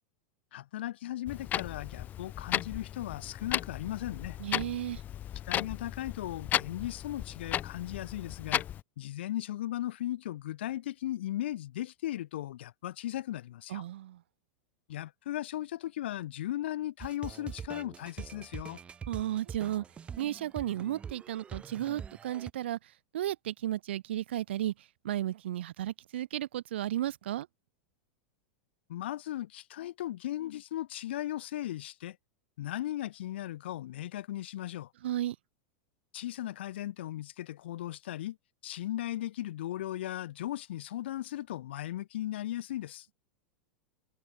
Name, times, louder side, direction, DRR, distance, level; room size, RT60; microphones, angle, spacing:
voice 1, 0.5-4.4 5.4-8.7 9.0-13.8 14.9-18.8 28.9-32.2 32.6-34.9 36.1-38.4 38.6-43.1, left 13 dB, 80° left, 3.9 m, -37 dB
Clock, 1.3-8.8, left 11 dB, 30° left, 2.5 m, -35 dB
voice 2, 4.4-5.0 13.7-14.2 19.1-19.8 20.2-22.8 23.1-24.7 25.0-27.5 35.0-35.4, right 13 dB, 85° right, 0.7 m, -34 dB
sound 1, 17.0-22.5, right 7 dB, 20° right, 2.4 m, -44 dB
supercardioid pair, 140°, 6 cm